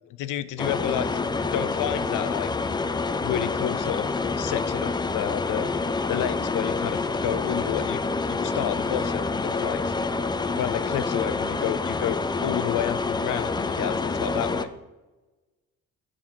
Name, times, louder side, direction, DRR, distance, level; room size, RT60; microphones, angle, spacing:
voice 1, 0.1-1.2 1.5-2.5 3.2-4.1 4.4-5.7 6.1-8.0 8.3-10.0 10.6-14.7, left 11 dB, 70° left, 15 dB, 0.5 m, -30 dB
sound 1, 0.6-14.6, left 4 dB, 15° left, 0.3 m, -27 dB
7.3 x 2.8 x 5.8 m, 1.1 s
cardioid pair, 70°, 32 cm